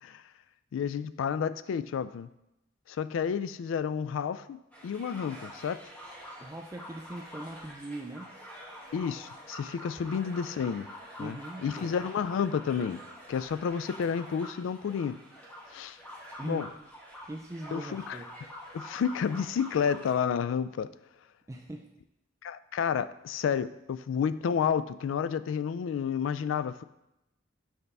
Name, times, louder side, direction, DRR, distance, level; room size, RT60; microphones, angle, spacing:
voice 1, 0.7-2.3 2.9-5.8 8.9-10.9 11.2-11.4 11.6-13.0 13.3-15.2 15.7-16.0 16.4-16.7 17.7-18.2 18.7-20.9 22.4-26.8, left 7 dB, 85° left, 14 dB, 0.3 m, -30 dB
sound 1, 4.7-20.1, equal, 10° left, 1.1 m, -46 dB
voice 2, 6.4-8.3 11.2-11.9 16.4-16.7 17.2-18.3 21.5-21.9, right 1 dB, 15° right, 1 dB, 0.4 m, -40 dB
6.5 x 3.4 x 5.3 m, 0.89 s
head